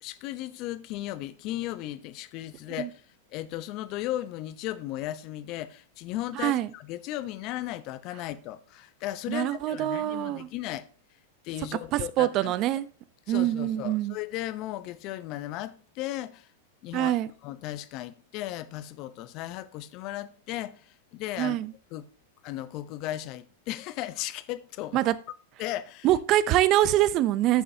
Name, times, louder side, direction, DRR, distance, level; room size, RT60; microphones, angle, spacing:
voice 1, 0.0-3.0 3.3-10.9 11.4-12.5 13.3-16.5 16.8-17.1 17.4-21.6 21.9-22.1 22.4-25.0 25.6-26.1, left 14 dB, 45° left, 0.7 m, -36 dB
voice 2, 6.3-6.7 9.3-10.5 11.9-12.9 13.3-14.2 16.9-17.3 21.4-21.7 24.9-25.1 26.0-27.6, right 13 dB, 40° right, 0.6 m, -24 dB
11.5 x 5.5 x 2.8 m
hypercardioid pair, 105°, 0 cm